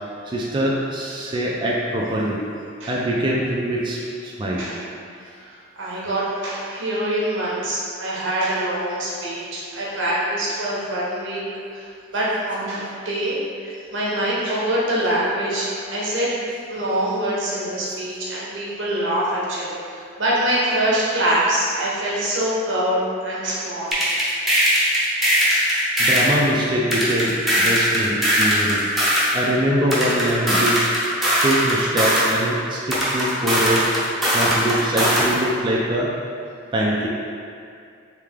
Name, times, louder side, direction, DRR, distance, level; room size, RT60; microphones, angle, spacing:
voice 1, 0.3-2.4 2.9-4.6 26.0-28.9 29.3-30.9 31.4-33.9 34.3-36.1 36.7-37.1, right 1 dB, 25° right, -4 dB, 0.3 m, -23 dB
voice 2, 5.2-11.4 11.7-16.4 16.7-24.0, right 1 dB, 90° right, -7 dB, 1.0 m, -24 dB
sound 1, 23.9-26.4 26.9-29.4 29.9-32.4 32.9-35.4, equal, ahead, 0.7 m, -19 dB
3.3 x 2.8 x 3.5 m, 2.4 s
head